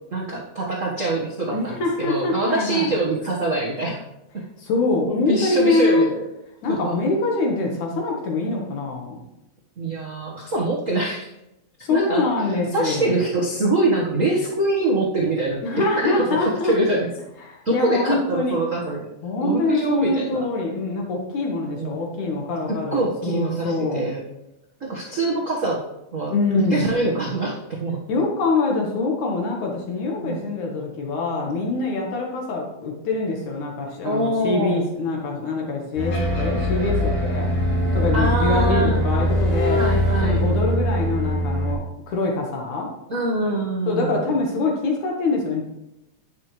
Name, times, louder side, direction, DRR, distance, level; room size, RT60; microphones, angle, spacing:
voice 1, 0.1-4.0 5.1-6.2 6.7-7.0 9.8-11.3 11.9-12.2 12.7-16.2 16.6-17.1 17.6-19.1 19.4-20.4 21.8-22.0 22.7-24.2 24.8-25.8 26.1-26.3 26.7-28.0 30.2-30.5 34.0-34.8 38.1-39.0 39.8-40.4 43.1-44.3, right 2 dB, 40° right, -4 dB, 1.1 m, -24 dB
voice 2, 1.5-2.9 4.6-6.1 6.6-9.2 11.8-13.1 15.6-16.7 17.4-18.6 19.2-24.1 26.3-27.0 28.1-37.5 37.9-39.8 40.2-42.9 43.9-45.6, left 3 dB, 70° left, 0 dB, 2.8 m, -24 dB
sound 1, 36.0-41.7, equal, 50° left, 4.3 m, -22 dB
11.0 x 10.5 x 3.2 m, 0.89 s
omnidirectional pair, 3.6 m